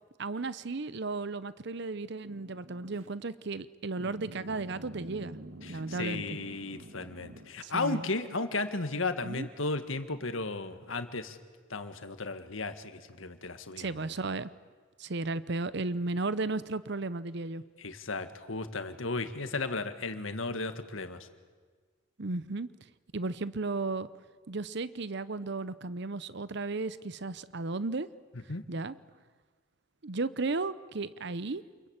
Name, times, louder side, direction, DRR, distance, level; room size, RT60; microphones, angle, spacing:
voice 1, 0.2-5.4 5.7-6.4 7.6-8.0 9.2-9.5 13.8-14.5 15.0-17.6 22.2-22.7 23.1-24.1 24.5-28.1 28.7-28.9 30.0-31.6, right 3 dB, 60° right, 16 dB, 0.8 m, -34 dB
sound 1, 2.2-3.1 4.0-7.5, right 1 dB, 85° right, 2.5 m, -47 dB
voice 2, 5.6-11.4 11.7-13.9 17.8-21.3 28.3-28.6, left 3 dB, 80° left, 9 dB, 1.8 m, -35 dB
29.0 x 22.0 x 8.9 m, 1.5 s
head